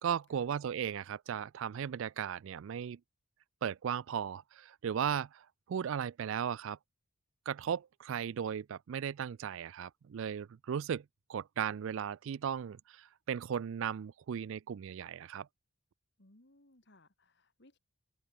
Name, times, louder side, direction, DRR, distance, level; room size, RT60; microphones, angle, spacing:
voice 1, 0.0-3.0 3.6-6.8 7.5-11.0 11.3-15.5, right 8 dB, 65° right, 0.3 m, -36 dB
voice 2, 16.2-17.8, left 1 dB, 50° left, 2.6 m, -64 dB
open air
head